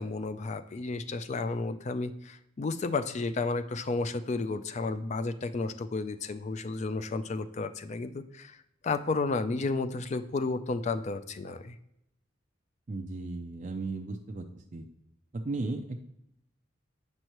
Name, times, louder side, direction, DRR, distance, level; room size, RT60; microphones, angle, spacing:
voice 1, 0.0-8.6 8.8-11.8, left 3 dB, 35° left, 11 dB, 0.4 m, -32 dB
voice 2, 12.9-14.5 14.7-14.9 15.3-16.0, right 3 dB, 40° right, 2 dB, 0.4 m, -35 dB
7.9 x 5.4 x 3.0 m, 0.80 s
head